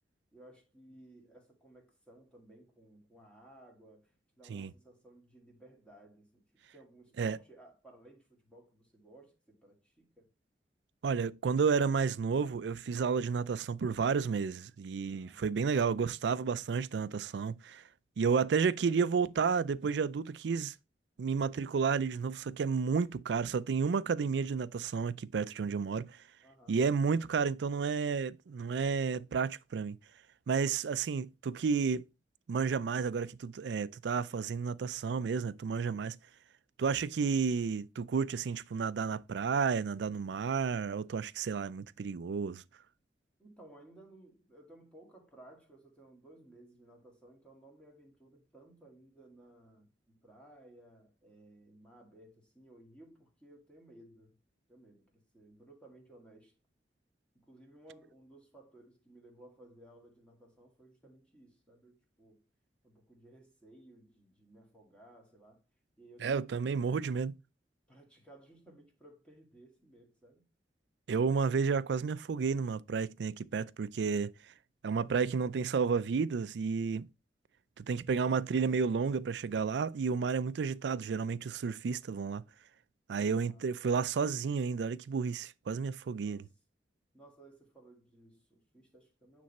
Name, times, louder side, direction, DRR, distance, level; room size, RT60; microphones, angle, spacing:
voice 1, 0.3-10.3 15.1-15.8 26.4-26.8 43.4-54.4 54.7-56.5 57.3-62.4 62.8-65.6 66.0-67.1 67.9-70.4 83.3-83.7 86.2-86.6 87.1-89.4, right 1 dB, 5° left, 2.0 m, -58 dB
voice 2, 11.0-17.8 18.2-20.7 21.2-26.1 26.7-30.0 30.5-32.0 32.5-36.2 36.8-42.6 66.2-67.3 71.1-74.3 74.8-77.1 77.8-82.4 83.1-86.4, right 5 dB, 70° right, 0.4 m, -31 dB
9.4 x 3.4 x 4.1 m
head